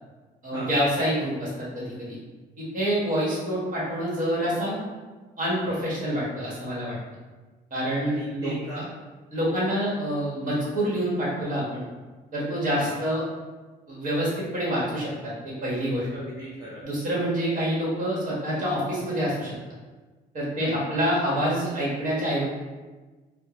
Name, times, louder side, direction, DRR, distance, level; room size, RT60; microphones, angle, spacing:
voice 1, 0.4-2.2 2.6-4.8 5.4-7.0 7.7-8.5 9.3-11.8 12.3-13.2 13.9-16.1 16.8-19.5 20.3-22.4, equal, 50° right, -6 dB, 1.3 m, -27 dB
voice 2, 8.0-8.9 12.7-12.9 16.1-16.8 20.6-20.8, right 1 dB, 20° right, -8 dB, 0.8 m, -37 dB
3.6 x 2.1 x 2.9 m, 1.3 s
cardioid pair, 110°, 17 cm